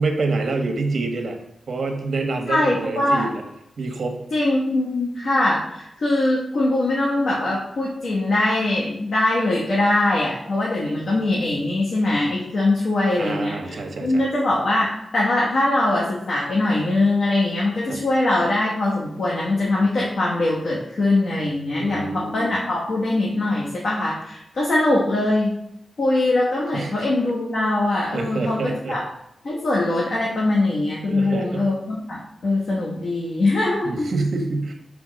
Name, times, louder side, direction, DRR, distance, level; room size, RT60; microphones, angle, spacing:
voice 1, 0.0-1.4 1.7-3.4 3.8-4.2 13.2-14.2 17.9-18.0 21.8-22.5 26.7-26.9 28.1-29.0 31.1-31.7 33.8-34.7, right 3 dB, 60° right, 4 dB, 1.1 m, -26 dB
voice 2, 2.5-3.3 4.3-25.5 26.0-29.0 29.4-34.1, left 2 dB, 70° left, -4 dB, 1.2 m, -22 dB
5.9 x 3.5 x 5.1 m, 0.80 s
wide cardioid pair, 115°, 0 cm